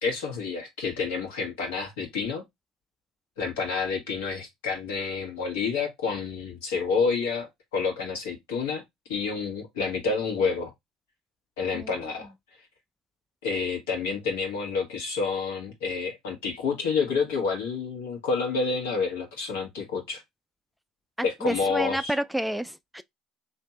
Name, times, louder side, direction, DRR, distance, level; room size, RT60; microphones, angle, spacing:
voice 1, 0.0-2.4 3.4-8.8 9.1-10.7 11.6-12.3 13.4-20.2 21.2-22.1, left 5 dB, 80° left, 1.5 m, -29 dB
voice 2, 21.2-23.0, right 1 dB, ahead, 0.3 m, -30 dB
3.4 x 2.8 x 4.1 m
hypercardioid pair, 65°, 0 cm